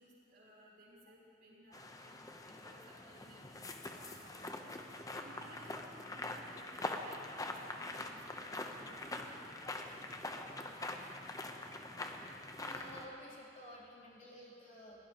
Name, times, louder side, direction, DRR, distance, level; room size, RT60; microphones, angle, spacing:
voice 1, 0.0-3.5 3.9-4.7 5.1-6.7 7.0-9.6 9.9-10.1 11.1-11.3, right 1 dB, 55° right, -5 dB, 4.0 m, -59 dB
sound 1, 1.7-13.1, left 2 dB, 20° left, 0.8 m, -44 dB
voice 2, 12.6-15.0, equal, 40° left, -6 dB, 3.1 m, -52 dB
22.0 x 16.5 x 3.0 m, 2.6 s
head